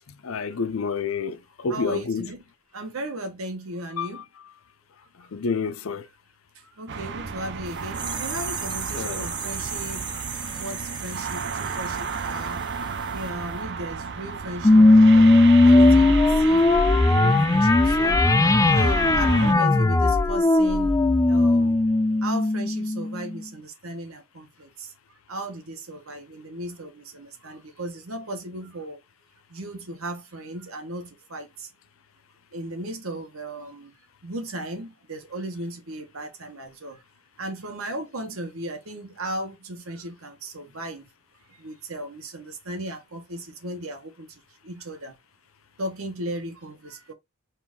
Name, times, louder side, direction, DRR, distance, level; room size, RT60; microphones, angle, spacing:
voice 1, 0.2-2.3 4.0-4.2 5.3-6.0 8.9-9.3, left 5 dB, 70° left, 0.5 m, -29 dB
voice 2, 1.7-2.4 2.7-4.3 6.5-10.1 10.6-12.6 13.1-16.7 17.0-18.2 18.7-21.0 21.3-21.8 22.2-24.9 25.3-29.0 29.5-31.7 32.5-33.9 34.2-37.0 37.4-41.1 41.5-45.1 45.8-47.1, right 1 dB, 80° right, 1.2 m, -36 dB
sound 1, 6.9-19.5, right 5 dB, 55° right, 0.6 m, -33 dB
sound 2, 7.7-13.3 13.6-13.7, right 5 dB, 20° right, 0.7 m, -36 dB
sound 3, 14.6-23.4, left 2 dB, 15° left, 0.3 m, -17 dB
4.3 x 2.6 x 3.6 m
head